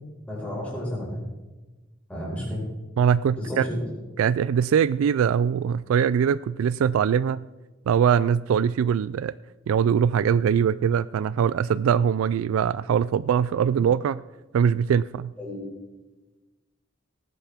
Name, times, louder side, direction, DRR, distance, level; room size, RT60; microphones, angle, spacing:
voice 1, 0.3-1.2 2.1-2.6 3.3-3.9 15.4-15.6, equal, 5° left, -6 dB, 5.1 m, -31 dB
voice 2, 3.0-3.6 4.2-7.4 7.9-9.3 9.7-14.2 14.5-15.3, right 7 dB, 85° right, 16 dB, 0.3 m, -22 dB
18.5 x 10.0 x 3.5 m, 1.1 s
head